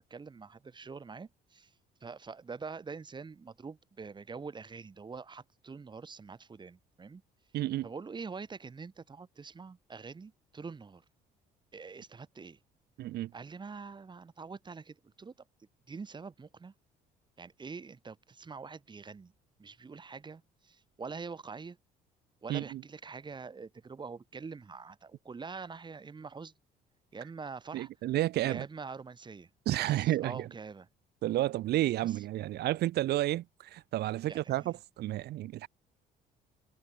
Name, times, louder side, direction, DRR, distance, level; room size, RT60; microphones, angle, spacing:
voice 1, 0.0-1.7 2.0-7.2 7.8-11.0 11.7-12.6 13.3-15.3 15.9-16.7 17.4-19.3 19.6-21.8 22.4-26.5 27.1-27.9 28.4-29.5 29.8-30.9 32.0-32.2 34.3-34.7, right 5 dB, 25° right, 5.6 m, -45 dB
voice 2, 7.5-7.9 13.0-13.3 22.5-22.8 27.7-28.6 29.7-30.5 31.2-35.7, right 15 dB, 75° right, 5.2 m, -31 dB
cardioid pair, 110°, 17 cm